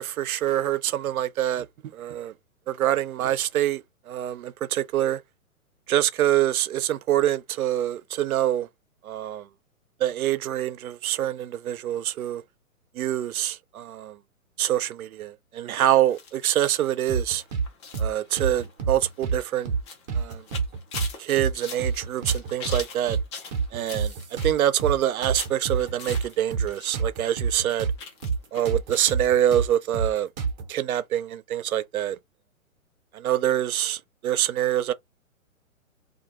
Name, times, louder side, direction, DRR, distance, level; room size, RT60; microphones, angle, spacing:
voice 1, 0.0-1.7 1.9-2.3 2.7-5.2 5.9-8.7 9.0-9.5 10.0-12.4 13.0-14.2 14.6-17.4 18.0-19.7 20.1-20.4 21.2-23.2 23.7-27.9 28.5-30.3 30.7-32.2 33.1-34.9, right 12 dB, 80° right, 0.5 m, -25 dB
sound 1, 16.1-26.9 27.2-29.3 29.6-29.7 30.0-30.1, left 5 dB, 20° left, 0.5 m, -42 dB
sound 2, 17.1-17.7 17.9-18.1 18.4-19.4 19.7-19.8 20.1-21.1 21.4-21.5 21.8-22.8 23.1-23.2 23.5-25.0 25.2-28.0 28.2-28.4 28.7-30.7, right 5 dB, 30° right, 0.6 m, -27 dB
2.3 x 2.2 x 2.9 m
hypercardioid pair, 130°, 42 cm